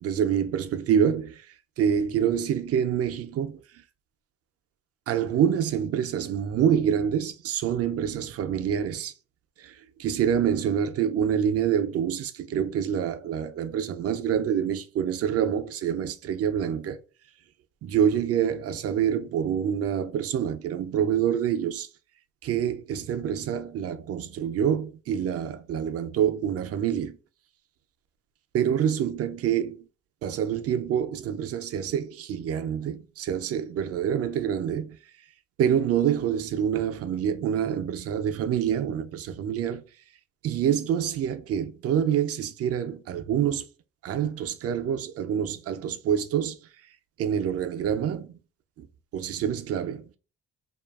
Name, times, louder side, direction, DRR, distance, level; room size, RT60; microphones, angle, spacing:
voice 1, 0.0-3.8 5.1-9.1 9.6-17.0 17.8-21.9 22.4-27.2 28.5-29.9 30.2-35.0 35.6-39.8 40.4-43.7 44.0-46.6 47.2-48.3 48.8-48.9 49.1-50.1, right 9 dB, 50° right, 0.4 m, -26 dB
2.6 x 2.4 x 2.3 m
cardioid pair, 90°, 30 cm